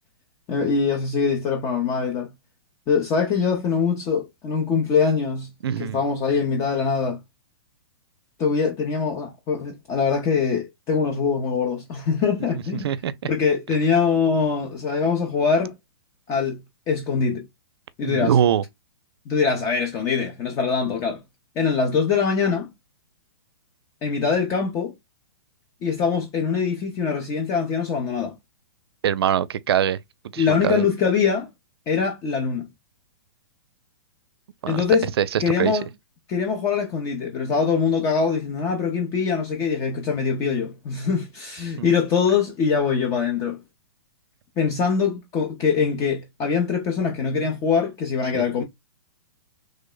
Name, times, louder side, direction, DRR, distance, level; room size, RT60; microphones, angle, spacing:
voice 1, 0.5-2.3 2.9-5.5 5.8-7.2 8.4-12.9 13.3-15.7 16.3-16.6 16.9-17.4 18.0-18.3 19.3-21.2 21.6-22.7 24.0-24.9 25.8-28.3 30.4-31.5 31.9-32.7 34.7-35.1 35.4-35.9 36.3-43.6 44.6-48.6, left 5 dB, 25° left, 0.6 m, -23 dB
voice 2, 5.6-6.0 12.8-13.1 18.0-18.6 29.0-30.0 30.3-30.8 34.6-34.8 35.2-35.8 41.8-41.9 48.3-48.4, right 9 dB, 75° right, 0.4 m, -23 dB
3.2 x 2.0 x 3.7 m
hypercardioid pair, 155°, 13 cm